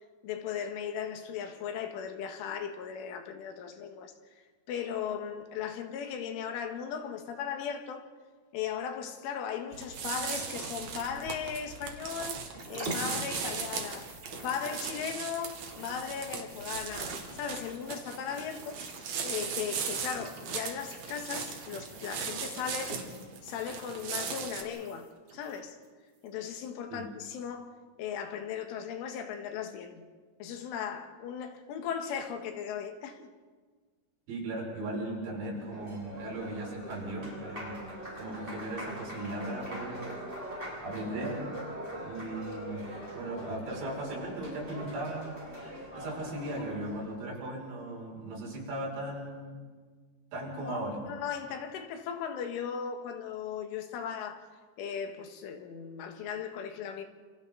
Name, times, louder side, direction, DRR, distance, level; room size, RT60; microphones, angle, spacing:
voice 1, 0.2-4.1 4.7-8.1 8.5-12.4 12.7-18.8 19.2-23.0 23.4-25.8 26.2-30.1 30.4-33.3 50.6-54.5 54.8-57.0, left 7 dB, 75° left, 4.0 m, -37 dB
sound 1, 9.7-24.6, right 6 dB, 55° right, 3.3 m, -38 dB
sound 2, 12.5-25.8 26.3-26.4, right 2 dB, 25° right, 2.9 m, -46 dB
voice 2, 34.3-37.8 38.1-40.2 40.8-41.5 42.0-42.9 43.1-45.4 45.9-49.6 50.3-51.0, right 1 dB, 90° right, 9.1 m, -37 dB
Applause, 35.3-47.1, right 1 dB, 10° right, 7.4 m, -42 dB
29.0 x 28.5 x 4.0 m
omnidirectional pair, 5.8 m